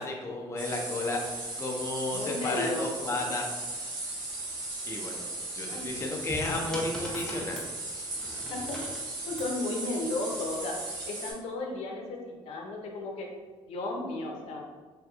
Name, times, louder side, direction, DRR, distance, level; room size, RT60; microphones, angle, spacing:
voice 1, 0.0-3.7 4.9-5.3 5.5-7.6, left 2 dB, 25° left, 0 dB, 0.5 m, -33 dB
sound 1, 0.6-11.3, right 2 dB, 45° right, 1.1 m, -37 dB
voice 2, 2.1-3.2 5.7-5.9 6.5-6.6 8.5-10.8 11.1-13.3 13.7-14.6, left 2 dB, 75° left, 1 dB, 0.6 m, -34 dB
sound 2, 5.9-9.6 10.6-11.0, left 1 dB, 5° left, 0.8 m, -41 dB
3.4 x 2.8 x 2.4 m, 1.4 s
cardioid pair, 100°, 11 cm